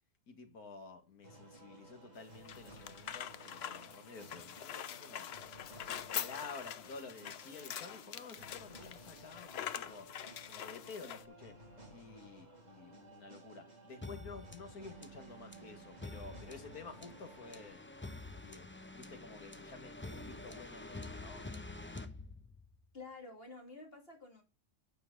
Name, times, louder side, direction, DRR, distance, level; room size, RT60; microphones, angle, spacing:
voice 1, 0.3-5.3 5.9-10.1 10.5-11.6 11.9-17.8 18.4-21.5, left 4 dB, 90° left, 2.2 m, -51 dB
sound 1, 1.2-17.7, right 2 dB, 30° right, 2.8 m, -56 dB
sound 2, 2.2-11.3, left 9 dB, 55° left, 0.7 m, -44 dB
sound 3, 14.0-22.8, left 2 dB, 10° left, 0.6 m, -48 dB
voice 2, 22.9-24.4, left 3 dB, 40° left, 2.7 m, -50 dB
9.7 x 6.9 x 3.9 m
omnidirectional pair, 1.5 m